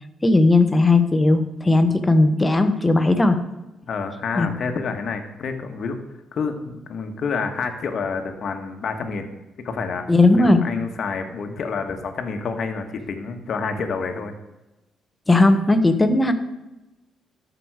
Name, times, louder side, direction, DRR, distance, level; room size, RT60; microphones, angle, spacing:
voice 1, 0.2-3.4 4.4-4.5 10.1-10.6 15.3-16.3, left 2 dB, 15° left, 8 dB, 1.0 m, -17 dB
voice 2, 3.9-6.0 6.3-9.3 9.6-10.1 10.4-14.3, left 5 dB, 60° left, 6 dB, 1.3 m, -28 dB
13.0 x 5.2 x 4.7 m, 1.0 s
cardioid pair, 90°, 0 cm